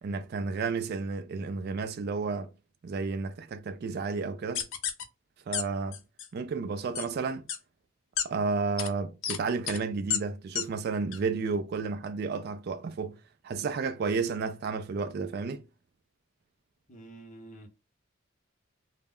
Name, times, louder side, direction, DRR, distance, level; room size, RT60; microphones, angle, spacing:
voice 1, 0.0-2.5 2.8-4.7 5.5-6.0 6.3-7.5 8.2-13.2 13.4-15.6, right 4 dB, 50° right, 0.3 m, -32 dB
sound 1, 4.5-5.0 5.5-5.6 5.9-6.3 6.9-7.1 7.5-7.6 8.2-8.3 8.8-8.9 9.2-9.4 9.7-9.8 10.1-10.2 10.5-10.6 11.1-11.2, left 8 dB, 65° left, 0.5 m, -30 dB
voice 2, 16.9-17.7, right 2 dB, 35° left, 0.8 m, -48 dB
2.1 x 2.0 x 3.5 m
head